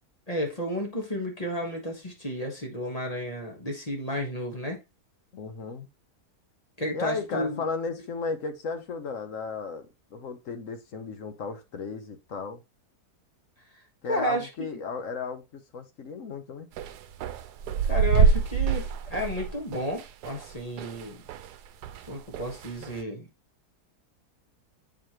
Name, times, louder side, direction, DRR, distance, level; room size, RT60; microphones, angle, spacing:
voice 1, 0.3-4.8 6.8-7.6 14.1-14.7 17.9-21.2 22.0-23.3, equal, 25° left, 1.3 m, -32 dB
voice 2, 5.3-5.9 6.9-12.6 14.0-16.7, left 5 dB, 60° left, 1.1 m, -35 dB
sound 1, 16.8-21.5 21.8-23.0, right 5 dB, 85° right, 1.2 m, -26 dB
7.5 x 4.8 x 2.9 m
omnidirectional pair, 1.7 m